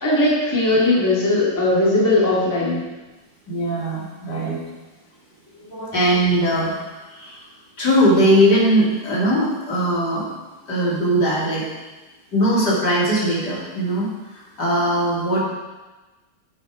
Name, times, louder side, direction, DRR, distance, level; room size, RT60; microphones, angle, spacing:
voice 1, 0.0-2.8 5.7-6.0, left 2 dB, 10° left, -6 dB, 2.3 m, -19 dB
voice 2, 3.5-4.6 5.9-6.7 7.1-7.4 7.8-10.2 10.7-11.6 12.3-14.1 14.3-15.4, equal, 60° left, -7 dB, 3.5 m, -19 dB
9.4 x 9.2 x 5.1 m, 1.2 s
omnidirectional pair, 2.0 m